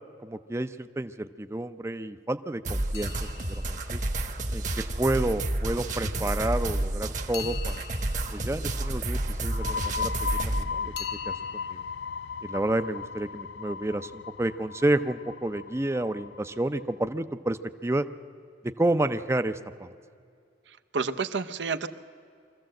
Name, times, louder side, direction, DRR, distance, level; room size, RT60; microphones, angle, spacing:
voice 1, 0.2-4.0 4.5-7.8 8.3-10.9 11.3-11.8 12.4-18.0 18.6-19.9, right 1 dB, 15° right, 10 dB, 0.5 m, -30 dB
sound 1, 2.6-10.6, right 1 dB, 40° right, 1.1 m, -30 dB
sound 2, 2.9-5.0 7.3-9.7 11.0-11.7, left 8 dB, 60° left, 0.9 m, -44 dB
sound 3, 9.4-16.8, left 6 dB, 75° left, 0.4 m, -36 dB
voice 2, 20.7-21.9, right 4 dB, 75° right, 9 dB, 0.8 m, -30 dB
23.5 x 14.5 x 7.7 m, 2.4 s
head